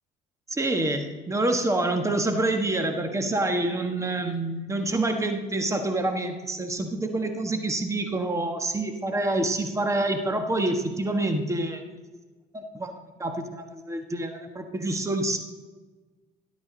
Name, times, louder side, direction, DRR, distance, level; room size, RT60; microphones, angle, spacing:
voice 1, 0.5-11.8 12.5-12.9 13.2-15.4, right 2 dB, 15° right, 6 dB, 1.4 m, -27 dB
12.0 x 11.5 x 4.0 m, 1.3 s
supercardioid pair, 85°, 18 cm